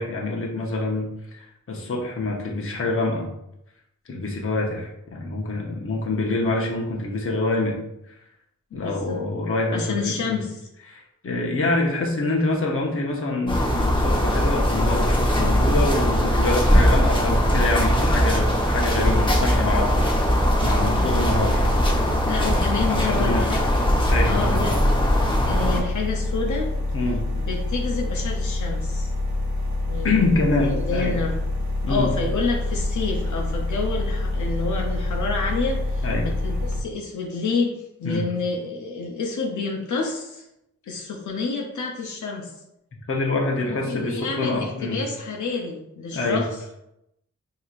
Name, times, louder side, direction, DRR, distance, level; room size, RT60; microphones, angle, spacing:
voice 1, 0.0-3.3 4.1-7.8 8.1-8.2 8.7-10.4 10.9-21.8 22.4-23.5 24.1-24.8 26.9-27.2 30.0-31.2 31.8-32.1 36.0-36.3 38.0-38.2 43.1-45.0 46.1-46.4, left 2 dB, 50° left, -1 dB, 0.9 m, -26 dB
voice 2, 8.7-9.2 9.7-10.7 22.3-23.7 24.3-24.8 25.5-26.7 27.3-29.1 29.9-31.4 31.9-40.4 40.9-42.5 43.6-46.6, left 4 dB, 85° left, 0 dB, 0.7 m, -29 dB
sound 1, 13.5-25.8, equal, 15° left, 0.9 m, -20 dB
sound 2, 19.9-36.8, left 2 dB, 75° right, 0.8 m, -27 dB
6.3 x 2.8 x 2.4 m, 0.85 s
wide cardioid pair, 130°, 29 cm